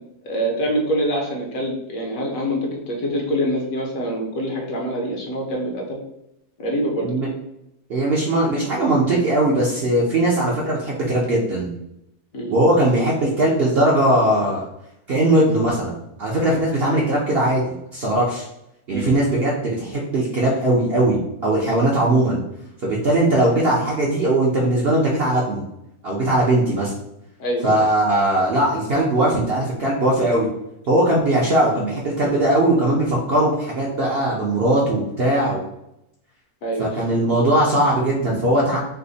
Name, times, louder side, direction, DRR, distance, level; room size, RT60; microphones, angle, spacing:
voice 1, 0.2-6.0 6.6-7.1 12.3-12.5 18.9-19.2 27.4-27.8 36.6-37.1, equal, 65° left, -1 dB, 1.2 m, -25 dB
voice 2, 7.9-11.7 12.5-14.6 15.1-18.5 18.9-22.4 22.8-25.6 26.0-26.9 27.6-30.5 30.9-35.7 36.8-38.8, right 1 dB, 55° right, -4 dB, 0.7 m, -19 dB
3.3 x 2.0 x 3.9 m, 0.81 s
omnidirectional pair, 1.6 m